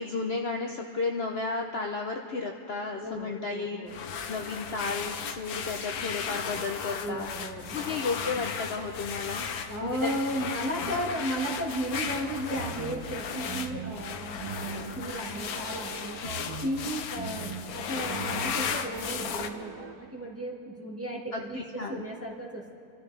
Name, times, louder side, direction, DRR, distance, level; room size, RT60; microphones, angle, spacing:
voice 1, 0.0-7.3 7.7-9.5 9.8-10.1 16.2-16.4 21.3-22.0, left 4 dB, 50° left, 2 dB, 0.9 m, -33 dB
voice 2, 3.0-4.0 7.0-7.8 9.7-16.2 16.6-22.7, right 1 dB, 10° right, -3 dB, 1.5 m, -35 dB
sound 1, 3.9-19.5, left 7 dB, 80° left, 1.3 m, -35 dB
sound 2, 12.5-19.9, right 6 dB, 70° right, 1.3 m, -41 dB
27.0 x 13.5 x 3.3 m, 2.6 s
omnidirectional pair, 1.6 m